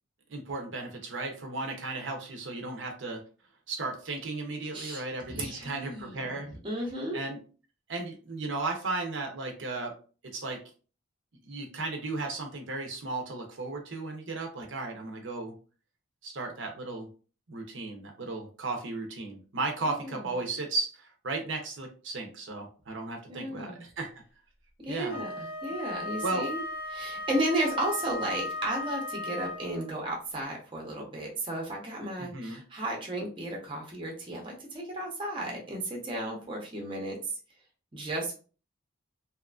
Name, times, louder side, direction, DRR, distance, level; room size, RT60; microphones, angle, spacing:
voice 1, 0.3-3.2 3.7-6.5 7.1-7.4 7.9-10.0 10.2-10.6 11.4-15.5 16.2-17.1 17.5-24.1 24.9-25.2 26.2-26.5 32.2-32.6, right 3 dB, 65° right, 2 dB, 0.6 m, -35 dB
voice 2, 5.3-6.3 6.6-7.2 19.8-20.2 23.3-23.8 24.8-25.3 25.6-26.6 26.9-37.2 37.9-38.3, right 1 dB, 25° right, 0 dB, 0.6 m, -34 dB
Wind instrument woodwind instrument, 25.1-30.0, left 2 dB, 55° left, 0.6 m, -36 dB
2.8 x 2.4 x 2.3 m, 0.37 s
head